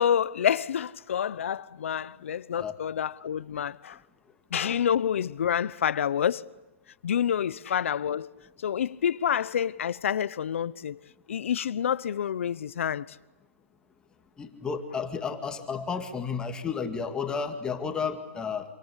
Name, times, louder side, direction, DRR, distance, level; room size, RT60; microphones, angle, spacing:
voice 1, 0.0-4.0 4.5-6.5 7.0-8.3 8.6-11.0 11.3-13.2, left 9 dB, 75° left, 0.9 m, -28 dB
voice 2, 14.4-18.6, left 5 dB, 10° left, 2.1 m, -32 dB
27.5 x 26.0 x 8.3 m
hypercardioid pair, 155°, 7 cm